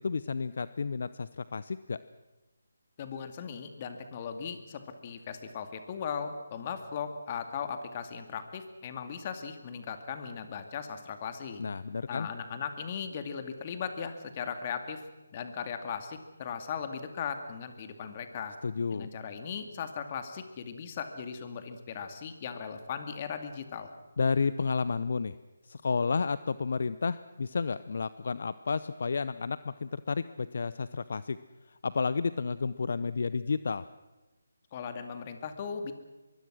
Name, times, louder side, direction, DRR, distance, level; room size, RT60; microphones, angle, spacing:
voice 1, 0.0-2.0 11.6-12.3 18.6-19.1 24.2-25.4 25.6-31.4 31.7-33.9, left 4 dB, 55° left, 15 dB, 0.7 m, -31 dB
voice 2, 3.0-11.6 12.1-15.0 15.3-18.6 18.9-23.9 34.7-35.9, left 6 dB, 30° left, 8 dB, 2.3 m, -38 dB
24.5 x 22.5 x 6.3 m, 1.1 s
figure-of-eight pair, 155°, 0 cm